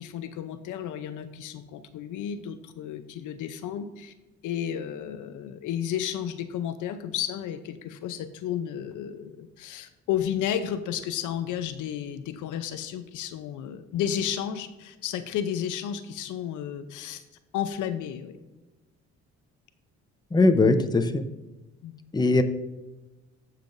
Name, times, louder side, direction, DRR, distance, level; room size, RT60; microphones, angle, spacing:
voice 1, 0.0-4.1 4.4-17.2 17.5-18.4 21.8-22.0, left 9 dB, 85° left, 10 dB, 0.7 m, -32 dB
voice 2, 20.3-21.2 22.1-22.4, left 3 dB, 15° left, 8 dB, 0.7 m, -20 dB
14.5 x 5.8 x 2.6 m, 1.1 s
cardioid pair, 90°, 30 cm